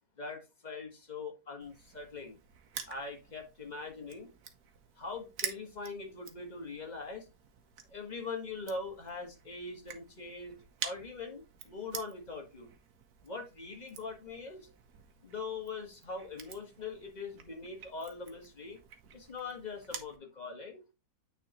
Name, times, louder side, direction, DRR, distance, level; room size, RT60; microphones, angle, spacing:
voice 1, 0.2-2.4 2.9-4.3 5.0-7.3 7.9-10.5 10.8-12.7 13.2-14.7 15.2-18.8 19.1-20.8, left 4 dB, 30° left, 1.4 m, -42 dB
Crushing, 1.6-20.2, right 7 dB, 80° right, 1.4 m, -48 dB
9.1 x 4.1 x 3.0 m
omnidirectional pair, 1.6 m